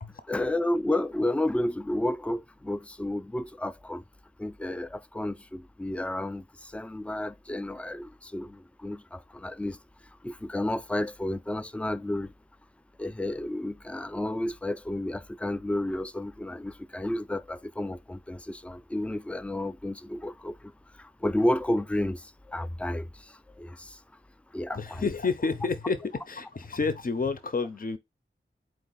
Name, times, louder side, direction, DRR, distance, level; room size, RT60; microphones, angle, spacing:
voice 1, 0.3-4.0 4.4-9.8 10.2-12.3 13.0-20.5 21.0-22.2 22.5-23.1 23.6-24.0 24.5-25.1, left 1 dB, 5° left, 0.4 m, -31 dB
voice 2, 24.7-28.0, left 4 dB, 45° left, 0.6 m, -30 dB
4.5 x 2.3 x 3.9 m
wide cardioid pair, 45°, 21 cm